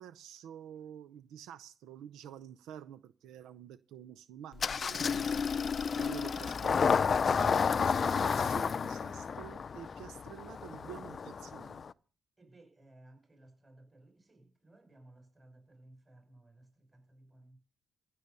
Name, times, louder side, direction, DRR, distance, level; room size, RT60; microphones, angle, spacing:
voice 1, 0.0-11.8, right 10 dB, 85° right, 0.6 m, -49 dB
Engine starting, 4.6-11.9, left 6 dB, 45° left, 0.5 m, -31 dB
voice 2, 12.4-17.6, right 1 dB, 20° right, 6.0 m, -59 dB
15.5 x 6.7 x 6.8 m
cardioid pair, 90°, 0 cm